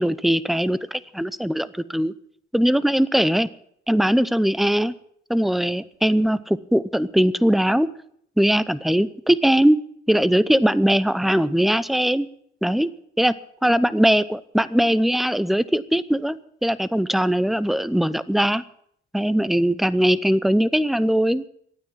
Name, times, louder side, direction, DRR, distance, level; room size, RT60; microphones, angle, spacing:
voice 1, 0.0-2.1 2.5-3.5 3.9-4.9 5.3-7.9 8.4-9.8 10.1-12.3 12.6-12.9 13.2-13.3 13.6-16.4 16.6-18.6 19.1-21.4, equal, ahead, 17 dB, 0.7 m, -20 dB
12.5 x 9.3 x 9.0 m, 0.67 s
cardioid pair, 90°, 20 cm